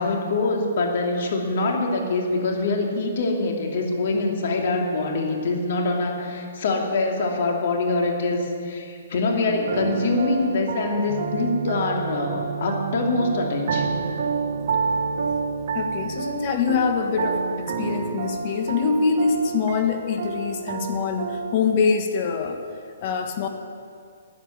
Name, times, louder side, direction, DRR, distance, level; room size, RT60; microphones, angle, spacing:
voice 1, 0.0-14.0, left 3 dB, 50° left, 2 dB, 2.8 m, -24 dB
sound 1, 9.5-21.6, right 5 dB, 55° right, 1.5 m, -29 dB
sound 2, 11.1-16.2, right 12 dB, 25° right, 1.7 m, -36 dB
voice 2, 15.7-22.6 23.0-23.5, left 5 dB, 35° left, 6 dB, 1.4 m, -24 dB
13.5 x 10.0 x 9.8 m, 2.3 s
hypercardioid pair, 165°, 0 cm